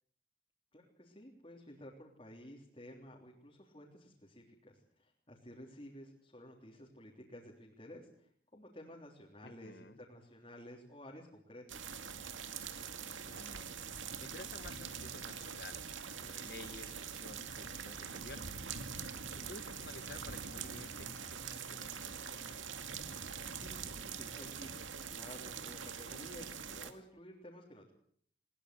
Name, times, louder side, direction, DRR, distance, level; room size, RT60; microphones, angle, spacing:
voice 1, 0.7-11.9 23.6-27.9, left 1 dB, 30° left, 3.5 m, -53 dB
voice 2, 9.4-10.0 13.0-13.7 14.2-18.5 19.3-22.6, left 3 dB, 55° left, 0.9 m, -53 dB
sound 1, 11.7-26.9, right 6 dB, 90° right, 2.3 m, -44 dB
21.5 x 20.0 x 7.7 m
head